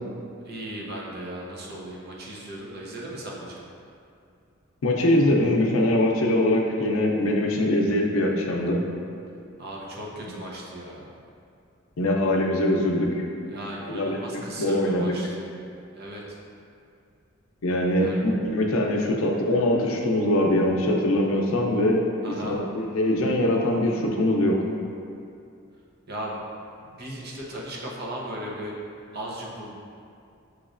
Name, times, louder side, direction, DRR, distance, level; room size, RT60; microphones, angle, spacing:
voice 1, 0.5-3.6 9.6-11.1 13.5-15.5 15.9-16.4 18.0-18.2 22.2-22.6 26.1-26.4 27.0-28.8 29.1-29.7, right 1 dB, 50° right, -3 dB, 0.7 m, -37 dB
voice 2, 4.8-8.8 10.2-10.3 12.0-13.2 13.9-15.1 17.6-24.6, left 1 dB, 90° left, 0 dB, 0.5 m, -23 dB
6.2 x 3.0 x 2.5 m, 2.5 s
head